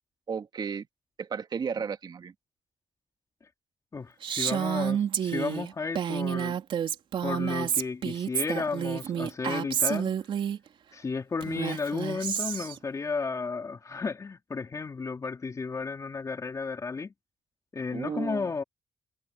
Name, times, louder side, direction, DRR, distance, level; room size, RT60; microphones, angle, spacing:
voice 1, 0.3-0.9 1.2-2.3 17.9-18.5, right 6 dB, 50° right, 2.2 m, -33 dB
voice 2, 3.9-6.6 7.2-10.1 10.9-17.1 17.7-18.6, left 4 dB, 35° left, 3.6 m, -33 dB
Female speech woman speaking, 4.2-10.6 11.4-12.8, right 9 dB, 65° right, 3.6 m, -29 dB
cardioid pair, 95°, 9 cm